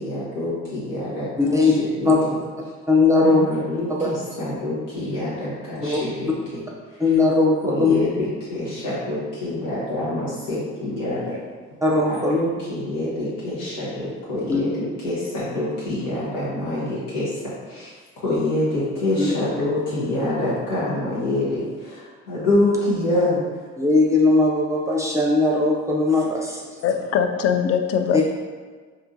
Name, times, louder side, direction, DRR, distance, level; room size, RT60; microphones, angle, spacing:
voice 1, 0.0-2.1 3.2-6.6 7.6-11.4 12.1-17.3 17.7-23.4, left 1 dB, 75° left, -9 dB, 1.0 m, -26 dB
voice 2, 1.4-2.3 2.9-3.4 3.9-4.1 5.8-6.0 7.0-7.9 11.8-12.4 14.5-14.6 19.2-19.3 23.8-26.8 28.1-28.2, left 3 dB, 10° right, -2 dB, 0.6 m, -19 dB
voice 3, 26.8-28.2, left 8 dB, 40° left, 7 dB, 0.4 m, -21 dB
4.3 x 2.7 x 2.6 m, 1.5 s
hypercardioid pair, 50°, 38 cm